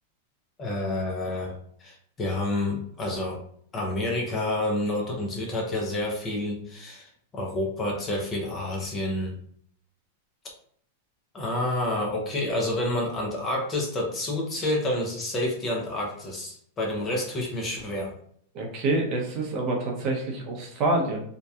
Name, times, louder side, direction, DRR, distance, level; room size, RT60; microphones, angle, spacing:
voice 1, 0.6-1.5 1.8-3.4 3.7-9.3 11.3-18.1, left 1 dB, 20° left, -1 dB, 0.5 m, -29 dB
voice 2, 18.5-21.2, right 2 dB, 35° right, 0 dB, 0.6 m, -27 dB
2.7 x 2.1 x 2.3 m, 0.63 s
supercardioid pair, 150°, 0 cm